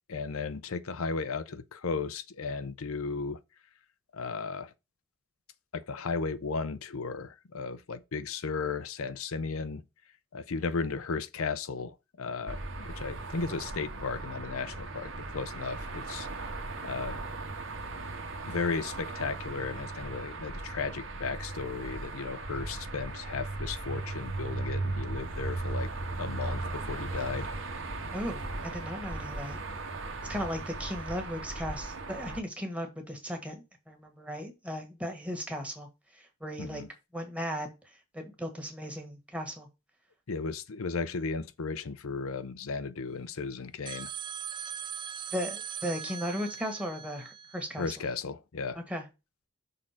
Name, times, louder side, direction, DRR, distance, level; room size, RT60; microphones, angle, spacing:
voice 1, 0.1-3.4 4.1-4.7 5.7-9.8 10.3-17.2 18.5-25.9 26.2-27.5 36.6-36.9 40.3-44.1 47.8-48.8, left 4 dB, 75° left, 0.6 m, -35 dB
sound 1, 12.5-32.4, right 2 dB, 65° right, 1.5 m, -37 dB
voice 2, 28.1-29.6 30.3-35.9 36.1-36.8 37.1-37.7 38.1-39.7 45.3-47.8 48.9-49.0, equal, 5° right, 1.6 m, -36 dB
sound 2, 43.9-48.2, right 8 dB, 20° right, 0.5 m, -41 dB
6.5 x 3.8 x 5.9 m
head